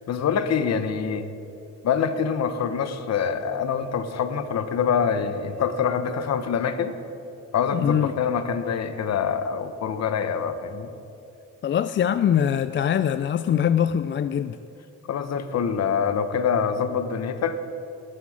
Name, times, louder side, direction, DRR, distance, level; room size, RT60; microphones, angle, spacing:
voice 1, 0.1-1.3 1.8-6.9 7.5-10.9 15.1-17.6, left 6 dB, 60° left, 10 dB, 1.1 m, -25 dB
voice 2, 7.7-8.1 11.6-14.6, left 9 dB, 40° left, 12 dB, 0.4 m, -22 dB
12.5 x 8.0 x 8.8 m, 2.7 s
cardioid pair, 90°, 30 cm